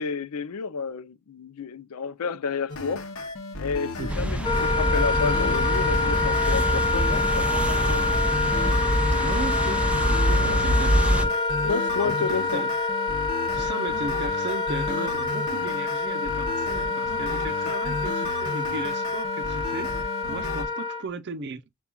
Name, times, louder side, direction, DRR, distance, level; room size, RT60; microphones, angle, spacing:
voice 1, 0.0-3.1 3.6-8.0 10.4-10.6 11.6-12.7 17.6-17.8, left 5 dB, 80° left, 0.5 m, -31 dB
sound 1, 2.7-20.7, left 2 dB, 60° left, 0.9 m, -34 dB
voice 2, 4.0-4.3 9.2-11.7 12.0-12.7 13.5-19.9 20.3-21.6, right 3 dB, 50° right, 0.6 m, -36 dB
sound 2, 4.1-11.3, equal, 5° right, 0.4 m, -25 dB
Wind instrument woodwind instrument, 4.4-21.0, left 3 dB, 20° left, 0.7 m, -27 dB
7.0 x 2.3 x 2.2 m
head